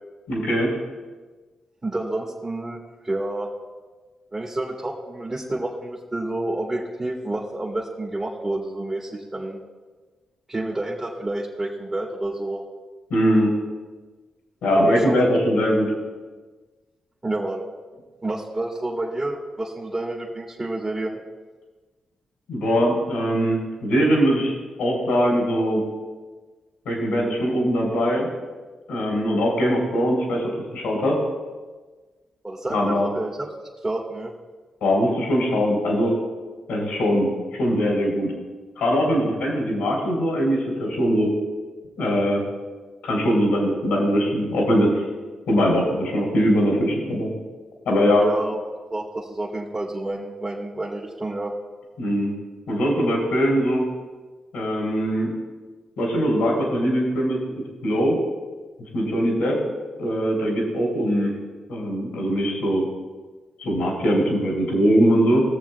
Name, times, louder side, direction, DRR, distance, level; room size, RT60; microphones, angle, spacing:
voice 1, 0.3-0.7 13.1-13.5 14.6-15.9 22.5-24.5 24.8-25.8 26.9-28.3 28.9-31.1 32.7-33.1 34.8-36.1 36.7-38.3 38.8-41.3 42.0-42.4 43.0-45.0 45.5-47.3 47.9-48.2 52.0-52.3 52.7-53.8 54.5-55.3 56.0-57.4 57.8-58.2 58.9-59.6 60.0-61.3 61.7-62.8 63.6-65.4, equal, 90° left, -2 dB, 3.5 m, -21 dB
voice 2, 1.8-2.8 3.0-3.5 4.3-9.6 10.5-12.6 14.8-15.3 17.2-17.6 18.2-21.2 32.4-33.5 33.8-34.3 48.2-48.6 48.9-51.5, right 2 dB, 30° right, -3 dB, 1.8 m, -29 dB
21.0 x 7.2 x 2.3 m, 1.3 s
supercardioid pair, 50°, 2 cm